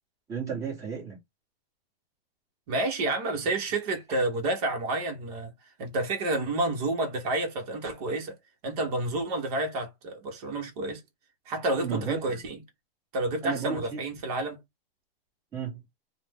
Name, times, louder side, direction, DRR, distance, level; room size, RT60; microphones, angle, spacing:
voice 1, 0.3-1.2 4.1-4.2 11.8-12.4 13.4-14.1 15.5-15.8, right 6 dB, 10° right, 1.1 m, -33 dB
voice 2, 2.7-5.5 5.8-8.4 8.6-11.0 11.5-12.6 13.1-14.6, right 2 dB, 40° right, 1.0 m, -29 dB
2.5 x 2.1 x 3.4 m
hypercardioid pair, 155°, 30 cm